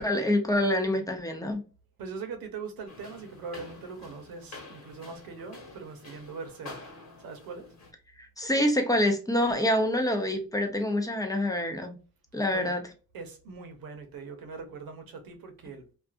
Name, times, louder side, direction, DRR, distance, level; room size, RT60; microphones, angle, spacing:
voice 1, 0.0-1.6 8.2-12.0 12.3-12.8, left 1 dB, 10° left, 0.7 m, -26 dB
voice 2, 2.0-6.9 7.2-7.7 12.5-12.7 13.1-16.0, right 4 dB, 90° right, 0.8 m, -41 dB
sound 1, 2.9-7.9, left 3 dB, 50° left, 1.3 m, -48 dB
2.5 x 2.4 x 2.4 m
cardioid pair, 90°, 35 cm